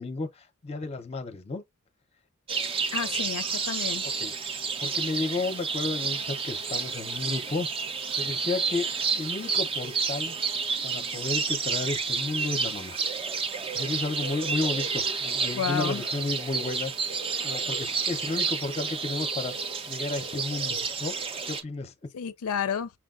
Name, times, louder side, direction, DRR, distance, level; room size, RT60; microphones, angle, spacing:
voice 1, 0.0-1.6 4.0-4.3 4.8-7.7 8.1-8.9 9.1-10.4 10.8-13.0 13.7-16.9 17.4-19.5 19.9-21.2 21.4-21.9, left 3 dB, 30° left, 0.6 m, -32 dB
sound 1, 2.5-21.6, right 5 dB, 25° right, 0.4 m, -30 dB
voice 2, 2.9-4.1 15.5-16.0 22.1-22.9, left 7 dB, 80° left, 0.4 m, -31 dB
5.8 x 2.2 x 2.3 m
head